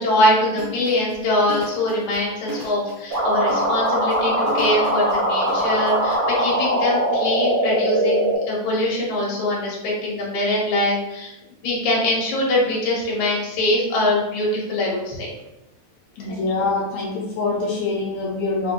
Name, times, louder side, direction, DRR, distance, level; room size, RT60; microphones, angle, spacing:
voice 1, 0.0-11.3 11.6-15.3 16.3-16.4, left 1 dB, 55° left, -4 dB, 1.7 m, -23 dB
sound 1, 0.5-6.2, left 2 dB, 85° right, 0.7 m, -36 dB
sound 2, 3.1-8.4, equal, 55° right, 1.5 m, -21 dB
voice 2, 16.2-18.7, left 3 dB, 75° left, -4 dB, 1.9 m, -24 dB
4.4 x 3.1 x 3.0 m, 0.94 s
omnidirectional pair, 3.3 m